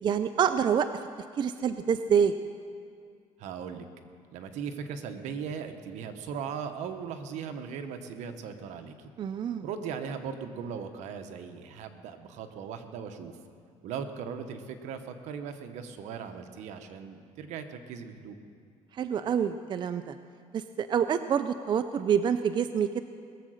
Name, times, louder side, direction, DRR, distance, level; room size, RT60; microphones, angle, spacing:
voice 1, 0.0-0.9 1.4-2.3 9.2-9.6 19.0-20.1 20.5-23.0, right 7 dB, 40° right, 10 dB, 0.5 m, -27 dB
voice 2, 3.4-3.8 4.3-9.1 9.6-13.3 13.8-18.4, right 6 dB, 75° right, 7 dB, 1.1 m, -38 dB
20.5 x 7.7 x 6.4 m, 2.2 s
cardioid pair, 115°, 12 cm